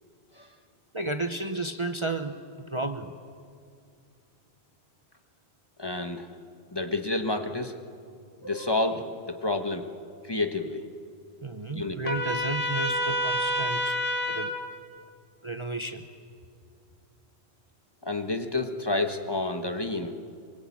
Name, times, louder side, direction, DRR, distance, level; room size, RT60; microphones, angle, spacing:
voice 1, 0.9-2.4 2.7-3.2 11.4-14.0 14.3-14.6 15.4-16.0, right 2 dB, 30° right, 7 dB, 0.9 m, -32 dB
voice 2, 5.8-6.3 6.7-7.8 8.4-9.9 10.2-10.8 11.7-12.0 18.0-20.1, left 2 dB, 25° left, 6 dB, 1.4 m, -29 dB
Trumpet, 12.0-14.6, equal, 55° left, 2.6 m, -28 dB
25.0 x 24.5 x 8.6 m, 2.3 s
omnidirectional pair, 1.1 m